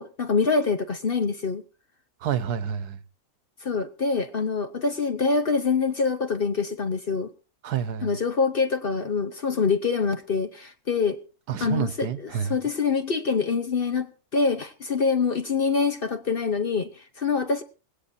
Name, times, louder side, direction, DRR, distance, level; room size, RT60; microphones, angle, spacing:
voice 1, 0.0-1.6 3.6-7.3 8.0-11.2 11.6-17.6, left 5 dB, 45° left, 0.8 m, -25 dB
voice 2, 2.2-3.0 7.6-8.1 11.5-12.6, right 8 dB, 85° right, 1.5 m, -29 dB
19.5 x 17.0 x 2.7 m
omnidirectional pair, 1.6 m